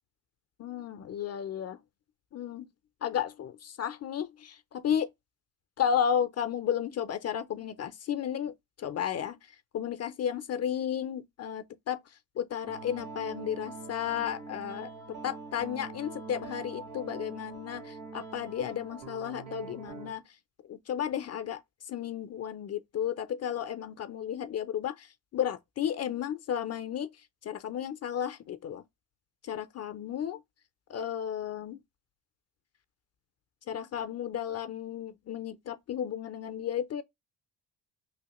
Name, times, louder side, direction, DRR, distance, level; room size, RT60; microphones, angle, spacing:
voice 1, 0.6-1.8 2.3-2.7 3.0-5.1 5.8-9.4 9.7-14.9 15.2-20.2 20.7-21.6 21.9-27.1 27.4-28.8 29.4-30.4 30.9-31.8 33.7-37.0, left 9 dB, 40° left, 0.4 m, -33 dB
sound 1, 12.7-20.1, right 4 dB, 90° right, 1.6 m, -44 dB
3.1 x 2.7 x 2.9 m
cardioid pair, 100°, 41 cm